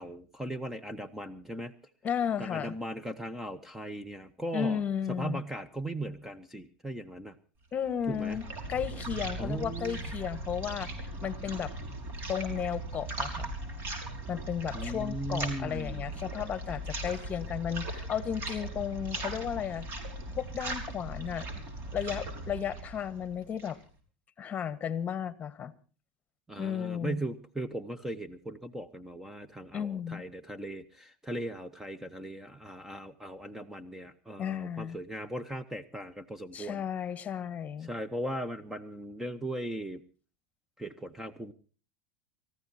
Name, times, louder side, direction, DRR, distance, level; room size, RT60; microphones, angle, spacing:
voice 1, 0.0-1.7 2.4-4.8 5.1-7.4 8.1-8.4 9.4-10.1 14.7-16.1 26.5-36.8 37.8-40.0 40.8-41.5, right 1 dB, 5° right, 13 dB, 1.0 m, -38 dB
voice 2, 2.0-2.7 4.5-5.4 7.7-11.7 12.3-13.5 14.3-19.9 20.3-21.5 21.9-23.8 24.4-25.7 26.6-27.2 29.7-30.2 34.4-35.0 36.5-37.9, left 8 dB, 25° left, 15 dB, 1.4 m, -34 dB
sound 1, 7.8-23.9, right 1 dB, 40° right, 5.6 m, -38 dB
29.0 x 14.5 x 2.8 m, 0.38 s
supercardioid pair, 115°, 6 cm